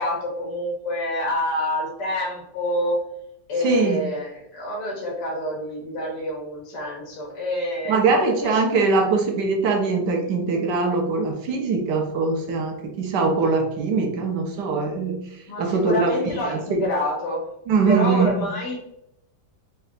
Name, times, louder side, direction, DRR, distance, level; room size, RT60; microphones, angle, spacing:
voice 1, 0.0-3.0 3.5-8.6 15.5-17.5 17.9-18.8, left 1 dB, 65° left, -2 dB, 1.7 m, -27 dB
voice 2, 3.6-4.0 7.9-15.2 15.6-16.9 17.7-18.3, right 4 dB, 75° right, 3 dB, 1.2 m, -22 dB
3.9 x 3.3 x 2.3 m, 0.80 s
omnidirectional pair, 2.0 m